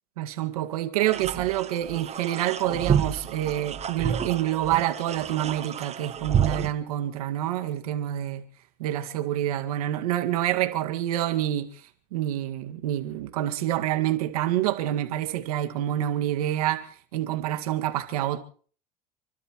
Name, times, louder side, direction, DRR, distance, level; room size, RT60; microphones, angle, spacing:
voice 1, 0.2-8.4 8.8-11.7 12.1-18.4, right 12 dB, 90° right, 2.1 m, -27 dB
sound 1, 1.0-6.7, right 8 dB, 35° right, 1.3 m, -29 dB
30.0 x 12.5 x 3.1 m
supercardioid pair, 95°, 18 cm